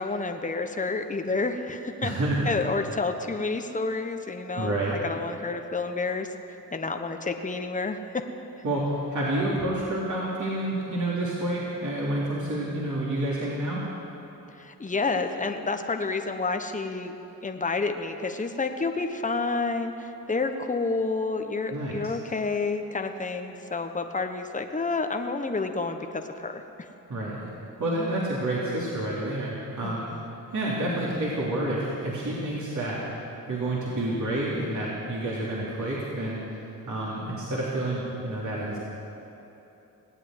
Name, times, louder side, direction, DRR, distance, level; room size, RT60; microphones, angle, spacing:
voice 1, 0.0-2.1 2.4-8.0 14.5-17.1 17.4-26.9 29.8-30.2, left 3 dB, 20° left, 5 dB, 1.2 m, -29 dB
voice 2, 2.0-2.6 4.6-5.0 8.6-13.8 21.7-22.1 27.1-27.4 27.8-30.0 30.5-33.0 33.5-36.4 36.9-38.8, right 1 dB, 50° right, -6 dB, 3.4 m, -29 dB
19.0 x 8.8 x 8.0 m, 3.0 s
supercardioid pair, 55°, 37 cm